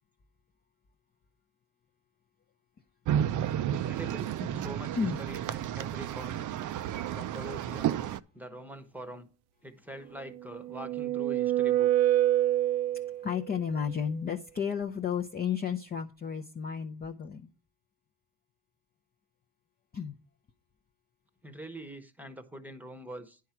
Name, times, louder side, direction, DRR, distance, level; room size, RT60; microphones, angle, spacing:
sound 1, 3.1-8.2, right 10 dB, 40° right, 0.5 m, -32 dB
voice 1, 3.7-6.5 7.1-8.0 8.3-9.3 9.6-12.1 21.4-23.4, right 1 dB, 5° right, 0.9 m, -44 dB
sound 2, 10.3-13.4, right 13 dB, 80° right, 0.7 m, -26 dB
voice 2, 13.2-17.5 19.9-20.2, left 7 dB, 20° left, 0.5 m, -33 dB
9.9 x 4.7 x 5.7 m
cardioid pair, 110°, 48 cm